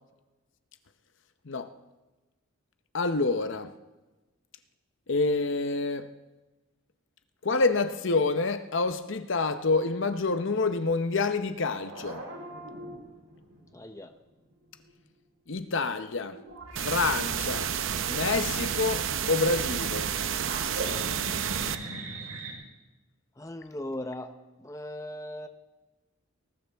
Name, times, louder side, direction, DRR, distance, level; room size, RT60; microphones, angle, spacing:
voice 1, 2.9-3.7 5.1-6.1 7.4-12.2 15.5-16.4 16.8-17.7 18.1-20.1, left 3 dB, 60° left, 0.8 m, -27 dB
sound 1, 11.8-14.1 14.3-14.9 15.9-16.0 16.3-19.4 19.7-22.5, right 2 dB, 90° right, 4.2 m, -41 dB
voice 2, 13.7-14.1 21.8-21.9 23.4-24.3 24.6-25.5, left 1 dB, 15° left, 0.7 m, -38 dB
sound 2, 16.8-21.8, right 8 dB, 60° right, 0.7 m, -30 dB
19.5 x 18.5 x 3.5 m
head